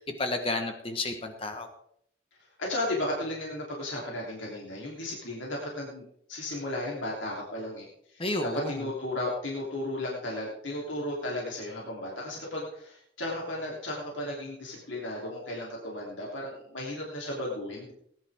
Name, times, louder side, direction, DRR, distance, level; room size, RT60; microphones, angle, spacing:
voice 1, 0.2-1.7 8.2-8.8, left 2 dB, 30° left, 5 dB, 1.2 m, -31 dB
voice 2, 2.4-6.0 6.3-17.9, left 1 dB, 90° left, -3 dB, 3.3 m, -35 dB
19.0 x 10.5 x 3.6 m, 0.70 s
head